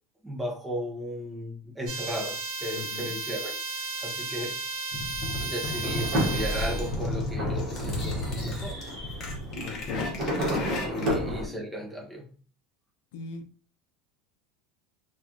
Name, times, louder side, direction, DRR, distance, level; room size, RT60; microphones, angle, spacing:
voice 1, 0.2-4.6 5.4-8.8 10.8-12.3, equal, 10° right, -1 dB, 0.7 m, -36 dB
sound 1, 1.8-6.9, right 3 dB, 50° right, 0.8 m, -34 dB
voice 2, 2.8-3.1 9.6-10.2 11.0-11.1 11.4-11.7 13.1-13.4, left 4 dB, 75° left, 7 dB, 0.4 m, -39 dB
sound 2, 4.9-11.3, left 1 dB, 35° left, 0.8 m, -33 dB
sound 3, 5.8-11.5, equal, 30° right, 1.1 m, -32 dB
3.0 x 2.3 x 2.5 m, 0.40 s
cardioid pair, 165°, 0 cm